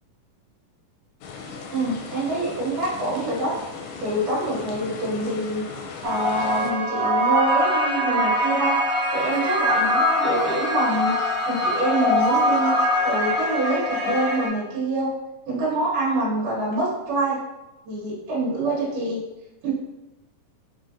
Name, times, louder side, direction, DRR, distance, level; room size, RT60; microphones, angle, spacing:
sound 1, 1.2-6.7, left 4 dB, 85° left, 2.1 m, -38 dB
voice 1, 1.7-3.5 4.0-5.6 6.0-8.8 9.1-15.1 15.5-17.4 17.9-19.2 19.6-19.7, right 2 dB, 75° right, -6 dB, 2.7 m, -26 dB
sound 2, 6.0-14.5, equal, 45° right, 0.8 m, -23 dB
5.4 x 2.5 x 2.7 m, 0.99 s
omnidirectional pair, 3.8 m